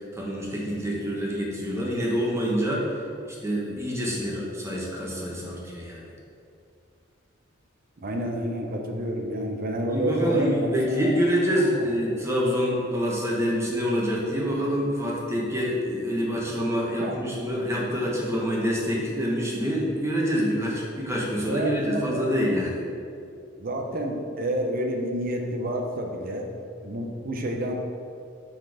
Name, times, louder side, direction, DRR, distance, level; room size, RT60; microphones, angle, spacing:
voice 1, 0.1-2.9 3.2-6.1 9.9-22.8, equal, 15° right, -4 dB, 1.2 m, -26 dB
voice 2, 8.0-11.1 11.7-11.9 17.0-17.2 21.5-22.3 23.6-26.5 26.8-27.7, right 1 dB, 45° right, 3 dB, 0.7 m, -29 dB
6.2 x 4.5 x 4.9 m, 2.4 s
head